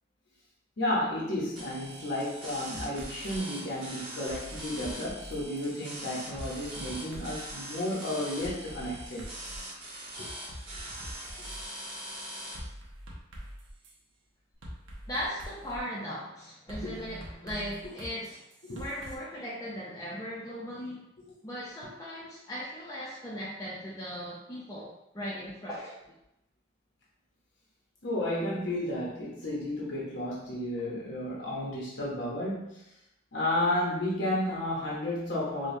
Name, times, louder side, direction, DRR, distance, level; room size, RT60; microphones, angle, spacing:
voice 1, 0.8-9.3 16.8-16.9 18.6-18.8 28.0-32.8 33.3-35.7, left 1 dB, 55° left, -5 dB, 0.7 m, -32 dB
sound 1, 1.6-12.6, right 1 dB, 25° right, 1.1 m, -42 dB
sound 2, 2.7-3.4 4.3-5.7 6.3-7.5 8.4-9.7 10.2-11.6 12.5-13.9 14.6-15.8 16.7-19.1, equal, 70° right, 0.8 m, -44 dB
voice 2, 15.1-18.4 18.7-21.1 21.4-26.0, equal, 15° left, -6 dB, 0.5 m, -38 dB
5.0 x 2.2 x 2.6 m, 0.84 s
head